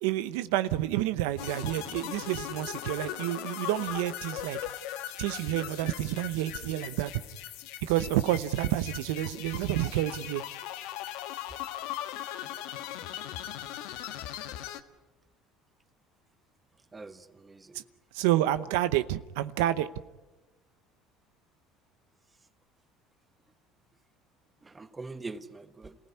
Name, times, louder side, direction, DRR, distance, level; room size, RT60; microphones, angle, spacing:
voice 1, 0.0-4.6 5.2-7.1 7.8-10.4 17.7-17.8 18.1-19.9, right 14 dB, 85° right, 0.8 m, -29 dB
sound 1, 1.4-14.8, left 12 dB, 80° left, 1.4 m, -39 dB
voice 2, 16.9-17.8 24.6-25.9, right 3 dB, 20° right, 1.3 m, -43 dB
27.5 x 16.0 x 9.6 m
supercardioid pair, 100°, 0 cm